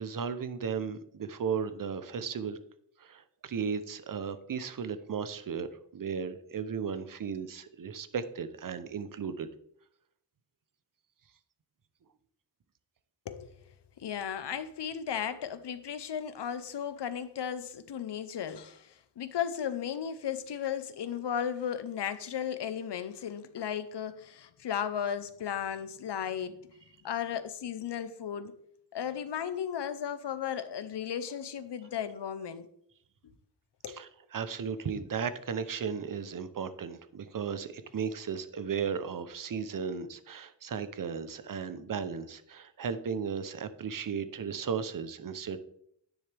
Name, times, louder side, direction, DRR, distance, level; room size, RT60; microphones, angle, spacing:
voice 1, 0.0-2.6 3.0-5.7 5.9-9.5 33.9-45.6, right 6 dB, 50° right, 0.8 m, -35 dB
voice 2, 13.3-13.6 14.0-26.6 27.0-28.5 28.9-32.7 33.8-34.0, left 8 dB, 70° left, 0.9 m, -35 dB
10.0 x 10.0 x 3.4 m
wide cardioid pair, 145°, 43 cm